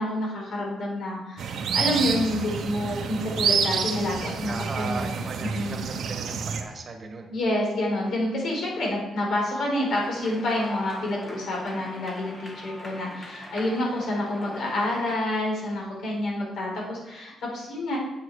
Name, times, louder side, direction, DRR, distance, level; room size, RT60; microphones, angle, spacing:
voice 1, 0.0-5.1 5.5-5.8 7.3-18.0, left 1 dB, 65° left, -1 dB, 4.2 m, -28 dB
sound 1, 1.4-6.6, right 6 dB, 60° right, 1.0 m, -28 dB
voice 2, 4.4-7.3, right 3 dB, 30° right, 4 dB, 1.6 m, -37 dB
sound 2, 9.8-15.1, equal, 20° left, 1.6 m, -41 dB
8.7 x 8.3 x 4.8 m, 0.94 s
cardioid pair, 140°, 0 cm